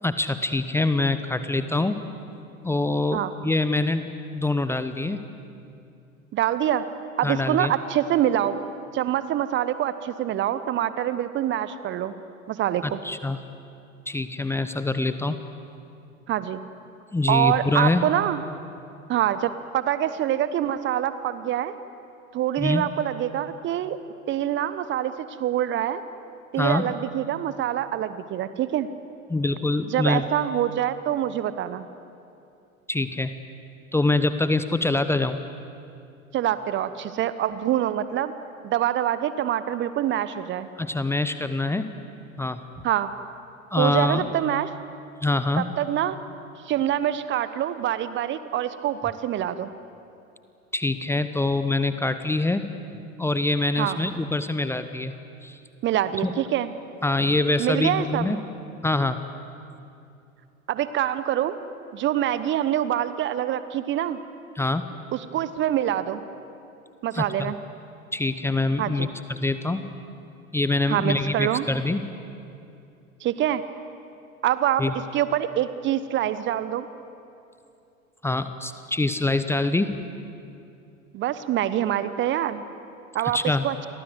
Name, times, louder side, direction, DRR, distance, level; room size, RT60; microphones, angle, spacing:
voice 1, 0.0-2.0 2.6-5.3 7.2-7.7 12.8-13.4 14.1-15.4 17.1-18.0 22.6-22.9 26.6-26.9 29.3-30.3 32.9-33.3 33.9-35.4 40.8-41.9 42.4-42.6 43.7-44.3 45.2-45.7 50.7-52.7 53.2-55.1 55.4-55.6 56.2-56.3 57.0-58.4 58.8-59.2 64.5-64.9 67.1-67.5 68.1-69.9 70.5-72.0 74.8-74.9 78.2-80.0 83.3-83.6, left 2 dB, 5° left, 10 dB, 1.0 m, -24 dB
voice 2, 6.3-6.9 7.2-8.6 8.9-12.1 12.5-13.0 16.3-16.6 17.3-18.4 19.1-21.7 22.3-24.0 24.3-26.0 26.5-28.9 29.9-31.8 36.3-38.3 38.6-40.7 42.8-43.1 43.8-44.7 45.6-46.2 46.6-49.7 53.8-54.0 55.8-56.7 57.6-58.4 60.7-61.6 61.9-64.2 65.1-66.2 67.0-67.6 68.8-69.1 70.9-71.7 73.2-73.6 74.4-74.8 75.1-76.9 81.1-82.6 83.1-83.7, right 11 dB, 25° right, 13 dB, 1.0 m, -25 dB
30.0 x 24.0 x 8.1 m, 2.6 s
figure-of-eight pair, 90°, 42 cm